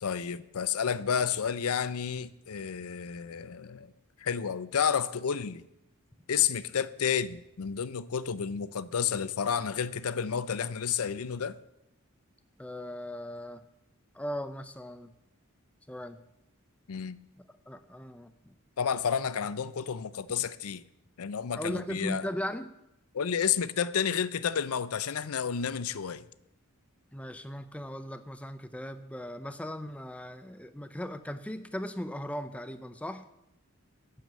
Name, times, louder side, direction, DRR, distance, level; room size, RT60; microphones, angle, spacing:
voice 1, 0.0-3.9 4.2-5.6 6.3-11.6 16.9-17.2 18.8-20.8 21.2-22.3 23.1-26.2, left 7 dB, 80° left, 0.5 m, -31 dB
voice 2, 12.6-13.6 14.1-15.1 15.9-16.2 17.7-18.5 19.2-19.3 21.5-22.7 27.1-33.3, equal, 5° left, 0.5 m, -38 dB
10.5 x 7.9 x 7.5 m
head